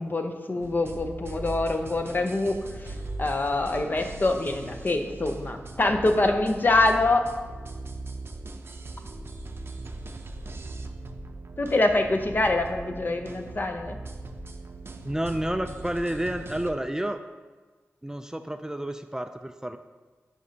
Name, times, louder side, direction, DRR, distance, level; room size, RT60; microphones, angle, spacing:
voice 1, 0.0-7.3 11.6-14.0, left 2 dB, 40° left, 5 dB, 0.7 m, -25 dB
sound 1, 0.6-16.7, right 2 dB, 55° right, 0.6 m, -39 dB
voice 2, 15.0-17.2 18.0-19.8, right 1 dB, 10° right, 7 dB, 0.4 m, -30 dB
9.3 x 5.1 x 2.8 m, 1.3 s
cardioid pair, 55°, 5 cm